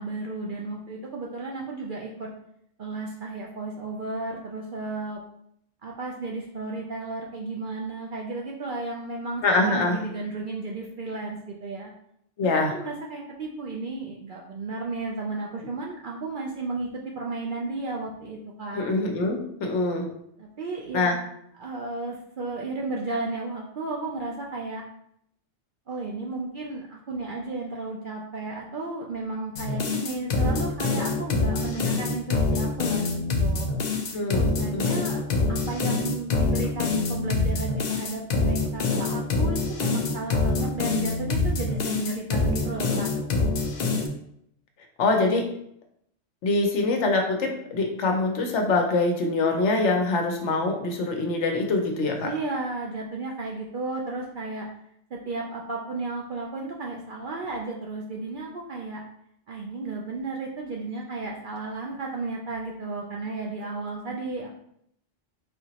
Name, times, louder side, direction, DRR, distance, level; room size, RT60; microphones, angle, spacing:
voice 1, 0.0-2.3 2.8-5.2 5.8-11.9 12.4-16.9 17.2-18.9 20.4-21.2 21.6-24.8 25.9-33.7 34.4-35.2 35.5-43.1 52.2-54.7 55.1-59.0 59.5-64.5, right 3 dB, 60° right, -2 dB, 0.5 m, -33 dB
voice 2, 9.4-10.0 12.4-12.8 18.7-20.1 20.9-21.2 34.1-34.4 34.7-34.8 44.0-44.1 45.0-45.5 46.4-52.3, left 3 dB, 70° left, 2 dB, 1.0 m, -24 dB
sound 1, 29.5-44.1, left 3 dB, 55° left, 0.5 m, -25 dB
4.0 x 2.9 x 2.8 m, 0.73 s
omnidirectional pair, 1.3 m